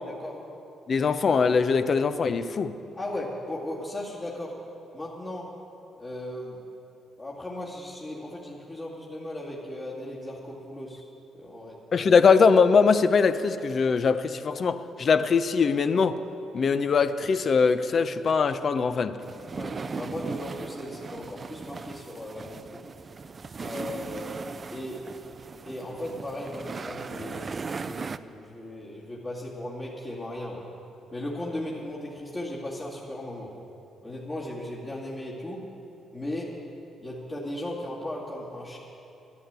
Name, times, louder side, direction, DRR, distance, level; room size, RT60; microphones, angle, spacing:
voice 1, 0.1-0.4 3.0-4.6 4.9-5.5 6.0-6.6 7.2-11.0 11.4-11.8 19.5-22.8 23.6-24.3 24.7-25.1 25.7-30.6 31.1-33.5 34.0-35.6 36.1-36.5 37.0-38.8, left 1 dB, 30° left, -8 dB, 2.3 m, -36 dB
voice 2, 0.9-2.7 11.9-16.2 16.5-19.2, left 5 dB, 50° left, 11 dB, 0.6 m, -22 dB
sound 1, 19.2-28.2, right 4 dB, 35° right, 0.4 m, -38 dB
11.5 x 11.0 x 8.0 m, 2.9 s
cardioid pair, 90°, 0 cm